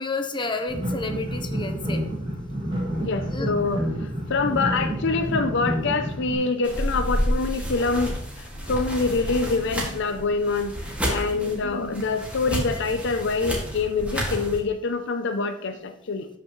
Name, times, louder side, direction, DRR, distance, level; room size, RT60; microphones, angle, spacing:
voice 1, 0.0-2.0 3.3-3.5 6.6-6.9 11.3-11.5, left 3 dB, 25° left, 5 dB, 1.0 m, -31 dB
sound 1, 0.7-6.3, equal, 30° right, 3.7 m, -29 dB
voice 2, 3.0-16.3, left 4 dB, 60° left, 8 dB, 0.6 m, -26 dB
sound 2, 6.6-14.6, equal, 5° right, 2.2 m, -30 dB
12.5 x 5.9 x 3.2 m, 0.70 s
head